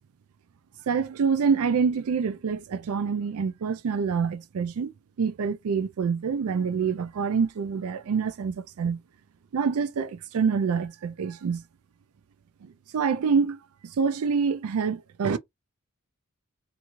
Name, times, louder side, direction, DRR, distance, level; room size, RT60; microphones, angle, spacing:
voice 1, 0.9-4.9 5.2-9.0 9.5-11.6 12.6-13.6 14.0-15.4, right 6 dB, 85° right, 0.4 m, -26 dB
2.5 x 2.5 x 2.9 m
head